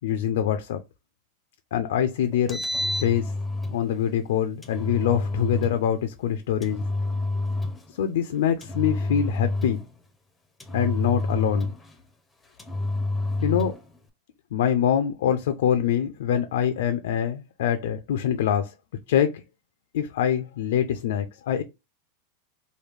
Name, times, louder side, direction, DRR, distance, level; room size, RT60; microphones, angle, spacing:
voice 1, 0.0-0.8 1.7-2.6 3.0-3.3 3.7-6.8 7.9-9.8 10.7-11.7 13.4-13.8 14.5-18.7 19.1-19.4 19.9-21.6, left 9 dB, 75° left, 0.4 m, -24 dB
Engine, 2.3-3.8 4.6-5.8 6.6-7.9 8.6-9.9 10.6-11.9 12.6-13.8, left 2 dB, 10° left, 0.6 m, -28 dB
3.1 x 2.2 x 3.3 m
supercardioid pair, 140°, 0 cm